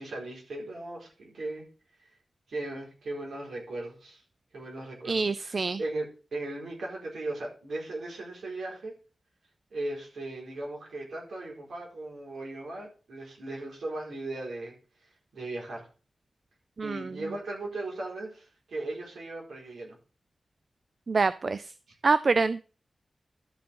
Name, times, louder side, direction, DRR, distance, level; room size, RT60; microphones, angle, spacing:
voice 1, 0.0-1.7 2.0-2.1 2.5-4.2 4.5-8.9 9.7-14.7 15.3-15.9 16.8-20.0, right 2 dB, 85° right, -2 dB, 4.6 m, -37 dB
voice 2, 5.0-5.8 16.8-17.1 21.1-21.7 22.0-22.6, right 4 dB, 60° right, 15 dB, 0.4 m, -26 dB
12.5 x 5.2 x 5.4 m, 0.36 s
cardioid pair, 40°, 0 cm